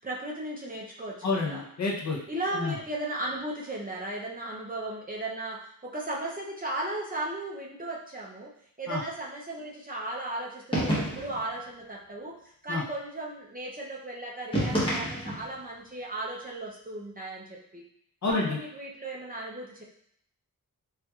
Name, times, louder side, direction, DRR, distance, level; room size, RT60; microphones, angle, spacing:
voice 1, 0.0-1.6 2.3-8.5 8.8-12.3 12.6-17.8 18.3-19.8, right 1 dB, 25° right, -3 dB, 0.4 m, -36 dB
voice 2, 1.2-2.2 2.5-2.8 8.9-9.0 12.7-12.8 18.2-18.6, left 3 dB, 50° left, -1 dB, 0.6 m, -29 dB
sound 1, 10.7-11.5 14.5-15.6, right 1 dB, 15° left, 0.9 m, -28 dB
4.3 x 2.4 x 2.3 m, 0.68 s
wide cardioid pair, 175°, 35 cm